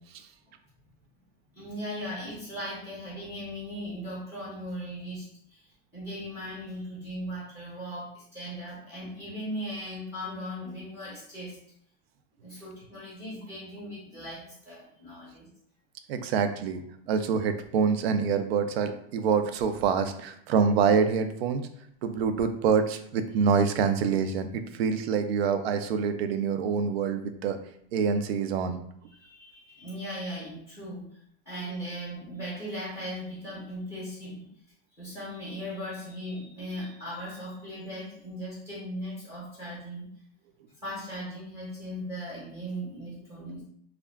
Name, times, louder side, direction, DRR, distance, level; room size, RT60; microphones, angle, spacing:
voice 1, 1.5-11.6 12.4-15.5 29.2-34.5 34.9-40.1 40.7-43.7, equal, 10° right, -7 dB, 0.6 m, -38 dB
voice 2, 16.1-21.6 22.0-27.6 27.9-28.8, right 6 dB, 90° right, 9 dB, 0.5 m, -26 dB
2.3 x 2.2 x 3.3 m, 0.68 s
supercardioid pair, 180°, 30 cm